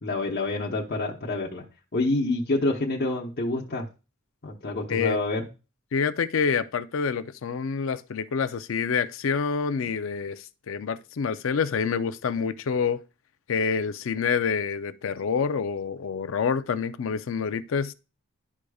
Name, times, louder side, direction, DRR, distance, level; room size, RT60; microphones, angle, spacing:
voice 1, 0.0-1.6 1.9-3.9 4.4-5.4, left 2 dB, 50° left, 0.9 m, -27 dB
voice 2, 5.9-13.0 13.5-17.9, left 6 dB, 65° left, 0.4 m, -27 dB
11.5 x 4.9 x 2.3 m
head